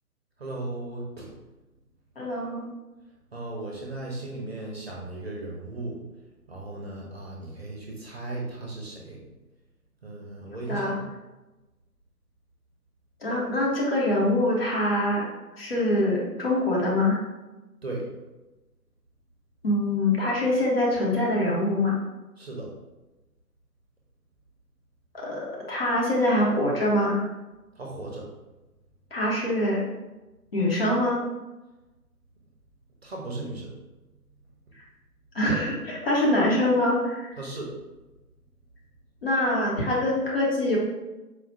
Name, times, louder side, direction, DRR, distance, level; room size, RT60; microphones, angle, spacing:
voice 1, 0.4-1.3 3.3-6.0 6.5-9.2 10.0-10.9 17.8-18.0 22.4-22.7 27.8-28.3 33.0-33.7 37.4-37.7, right 2 dB, 40° right, -1 dB, 0.7 m, -36 dB
voice 2, 2.2-2.7 10.7-11.0 13.2-15.3 15.6-17.2 19.6-22.0 25.2-27.2 29.1-29.8 30.5-31.2 35.3-37.3 39.2-40.8, left 1 dB, 40° left, -4 dB, 0.9 m, -24 dB
4.4 x 2.3 x 2.7 m, 1.1 s
figure-of-eight pair, 140°, 46 cm